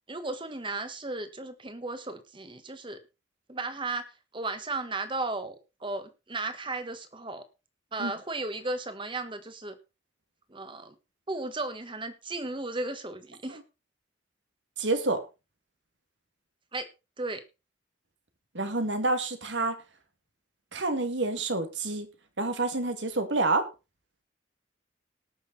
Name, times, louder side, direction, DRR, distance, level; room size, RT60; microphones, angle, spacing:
voice 1, 0.1-3.0 3.5-7.4 7.9-9.8 10.5-10.9 11.3-13.6 16.7-16.9 17.2-17.4, right 2 dB, 25° right, 9 dB, 1.5 m, -35 dB
voice 2, 14.8-15.2 18.5-19.8 20.7-22.1 22.4-23.7, right 2 dB, 75° right, 8 dB, 2.1 m, -28 dB
19.0 x 6.6 x 4.1 m, 0.28 s
head